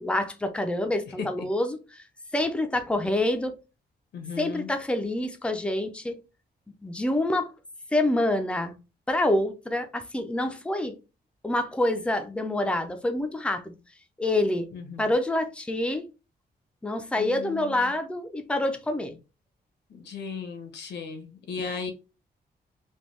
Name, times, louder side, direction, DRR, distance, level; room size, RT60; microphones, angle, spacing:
voice 1, 0.0-2.0 2.3-3.5 4.4-6.2 6.8-7.5 7.9-8.7 9.1-11.0 11.4-13.8 14.2-14.7 15.0-16.1 16.8-19.2, left 1 dB, 5° left, 0.4 m, -27 dB
voice 2, 4.1-4.7 14.7-15.1 17.2-17.9 19.9-21.9, left 5 dB, 85° left, 0.9 m, -36 dB
3.4 x 2.2 x 3.0 m
wide cardioid pair, 175°, 17 cm